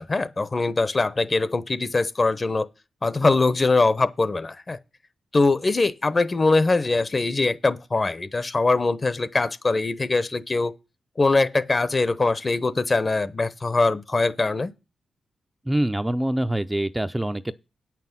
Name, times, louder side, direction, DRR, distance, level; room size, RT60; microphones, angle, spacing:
voice 1, 0.0-2.7 3.0-4.8 5.3-10.7 11.2-14.7, left 3 dB, 35° left, 0.8 m, -22 dB
voice 2, 15.7-17.5, right 1 dB, 10° right, 0.5 m, -25 dB
8.8 x 6.0 x 7.3 m
cardioid pair, 65°, 0 cm